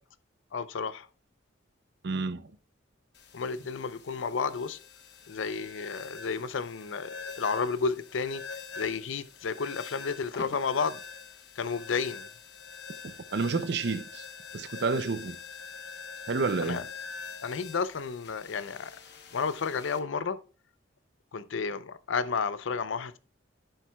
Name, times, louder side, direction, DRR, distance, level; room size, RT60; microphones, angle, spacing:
voice 1, 0.5-1.1 3.3-4.8 5.3-8.4 8.8-11.0 11.6-12.3 16.6-16.8 17.4-18.9 19.3-20.4 21.3-23.2, left 5 dB, 75° left, 0.5 m, -32 dB
voice 2, 2.0-2.5 13.0-14.2 14.5-15.4 16.3-16.9, right 4 dB, 55° right, 0.5 m, -30 dB
sound 1, 3.1-20.0, left 5 dB, 55° left, 1.0 m, -45 dB
10.0 x 7.3 x 2.2 m
head